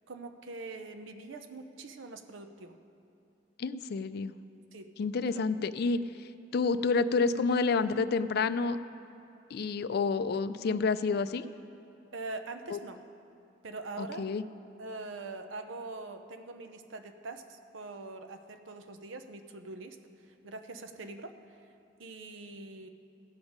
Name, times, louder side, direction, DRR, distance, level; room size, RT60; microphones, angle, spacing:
voice 1, 0.1-2.8 4.7-4.9 5.3-5.7 12.1-13.0 13.6-14.3 14.8-21.4 22.0-22.9, right 3 dB, 85° right, 7 dB, 0.8 m, -43 dB
voice 2, 3.6-4.3 5.0-8.8 9.5-11.5 12.7-12.8 14.0-14.4, left 4 dB, 55° left, 13 dB, 0.4 m, -29 dB
17.0 x 7.1 x 5.1 m, 2.7 s
head